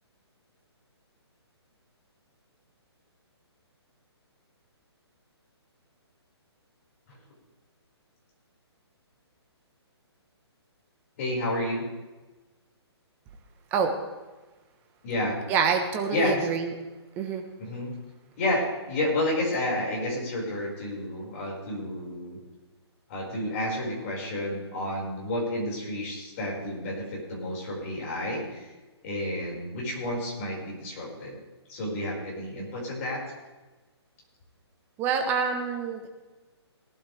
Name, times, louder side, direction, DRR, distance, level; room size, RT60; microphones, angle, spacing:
voice 1, 11.2-11.8 15.0-15.4 16.1-16.5 17.6-17.9 18.4-22.4 23.1-28.7 29.0-31.3 31.7-33.2, left 1 dB, 30° left, -4 dB, 5.4 m, -30 dB
voice 2, 15.5-16.7 17.2-17.4 35.0-36.1, right 6 dB, 15° right, 4 dB, 1.1 m, -26 dB
18.5 x 11.5 x 3.5 m, 1.2 s
hypercardioid pair, 170°, 14 cm